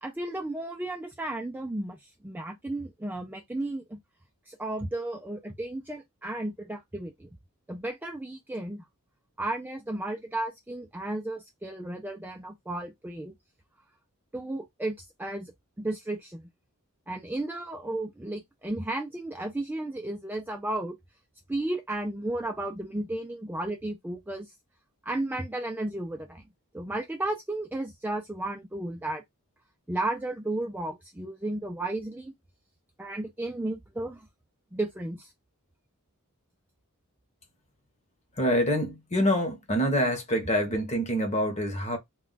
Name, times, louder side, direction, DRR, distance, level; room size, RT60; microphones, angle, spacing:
voice 1, 0.0-2.0 2.2-4.0 4.5-7.3 7.7-8.8 9.4-13.3 14.3-15.5 15.8-16.5 17.1-21.0 21.5-24.5 25.1-26.4 26.7-29.2 29.9-32.3 33.0-34.2 34.7-35.3, right 2 dB, 10° right, 0.4 m, -33 dB
voice 2, 38.4-42.0, equal, 30° left, 0.9 m, -26 dB
2.3 x 2.3 x 3.8 m
head